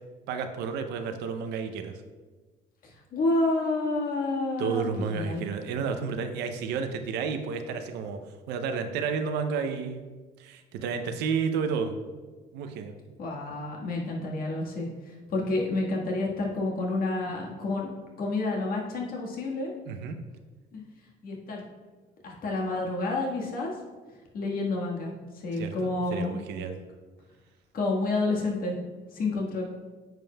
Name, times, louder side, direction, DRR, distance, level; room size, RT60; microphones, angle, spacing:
voice 1, 0.3-2.0 4.6-8.2 8.5-10.0 10.4-12.0 12.5-13.0 19.9-20.2 25.5-26.8, right 6 dB, 85° right, 7 dB, 0.6 m, -31 dB
voice 2, 2.8-5.4 13.2-17.9 18.2-19.7 20.7-20.8 21.2-21.6 22.2-23.7 24.3-26.4 27.7-28.8 29.1-29.7, left 2 dB, 60° left, -1 dB, 1.5 m, -29 dB
9.0 x 5.2 x 2.3 m, 1.3 s
cardioid pair, 110°, 17 cm